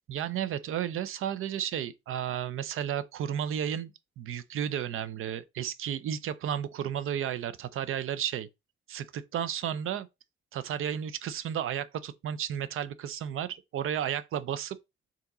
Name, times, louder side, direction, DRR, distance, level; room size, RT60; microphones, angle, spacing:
voice 1, 0.1-3.9 4.2-8.5 8.9-10.1 10.5-14.8, right 9 dB, 80° right, 0.5 m, -33 dB
4.6 x 2.9 x 3.8 m
wide cardioid pair, 180°, 21 cm